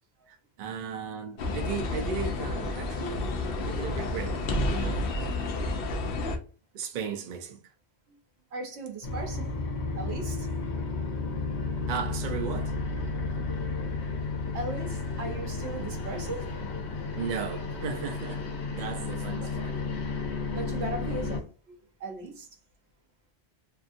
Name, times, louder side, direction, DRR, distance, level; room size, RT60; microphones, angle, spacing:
voice 1, 0.3-3.3 3.6-5.3 6.7-7.6 11.9-12.8 17.1-19.8, right 6 dB, 55° right, 0.6 m, -36 dB
sound 1, 1.4-6.4, left 2 dB, 65° left, 0.7 m, -30 dB
voice 2, 8.5-9.5 10.0-10.5 14.5-16.5 19.4-19.5 20.5-22.5, right 2 dB, 80° right, 1.1 m, -37 dB
sound 2, 9.0-21.4, left 3 dB, 90° left, 1.0 m, -33 dB
2.7 x 2.6 x 2.5 m
omnidirectional pair, 1.1 m